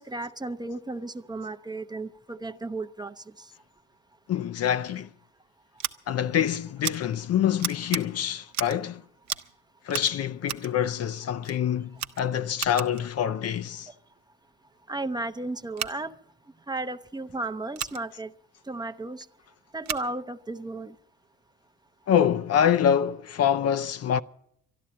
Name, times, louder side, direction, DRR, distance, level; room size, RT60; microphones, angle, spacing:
voice 1, 0.0-3.5 14.9-16.1 16.7-18.3 18.7-19.3 19.7-20.9, right 2 dB, 15° right, 0.6 m, -34 dB
voice 2, 4.3-5.1 6.1-9.0 9.8-13.9 22.1-24.2, left 9 dB, 55° left, 0.5 m, -25 dB
Scissors, 5.8-5.9 6.8-7.0 7.6-8.0 8.5-8.8 9.2-9.5 9.9-10.7 11.4-11.6 11.9-13.0 15.7-15.9 17.7-18.0 19.8-20.1, right 10 dB, 65° right, 0.8 m, -34 dB
12.5 x 11.5 x 8.5 m
cardioid pair, 90°, 30 cm